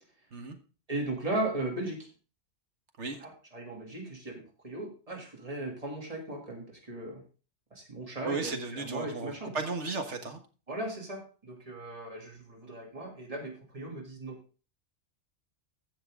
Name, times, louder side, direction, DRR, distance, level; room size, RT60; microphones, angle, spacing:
voice 1, 0.9-2.1 3.2-7.2 7.7-9.6 10.7-14.4, right 2 dB, 30° right, -1 dB, 2.8 m, -37 dB
voice 2, 8.2-10.4, right 3 dB, 80° right, 6 dB, 1.8 m, -35 dB
15.5 x 5.9 x 3.7 m, 0.35 s
omnidirectional pair, 1.2 m